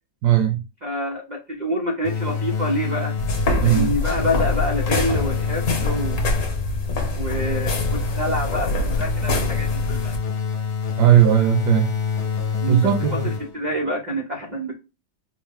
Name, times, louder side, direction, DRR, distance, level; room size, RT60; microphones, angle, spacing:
voice 1, 0.2-0.6 3.5-3.9 11.0-11.9 12.7-13.3, right 11 dB, 70° right, 1.1 m, -17 dB
voice 2, 0.8-3.1 3.6-6.2 7.2-10.1 12.6-14.8, equal, 90° right, 0.4 m, -27 dB
sound 1, 2.0-3.7 4.2-6.7 7.3-13.7, left 6 dB, 65° left, 1.3 m, -27 dB
sound 2, 3.2-10.2, left 2 dB, 50° left, 1.2 m, -25 dB
4.4 x 2.0 x 3.5 m
omnidirectional pair, 2.0 m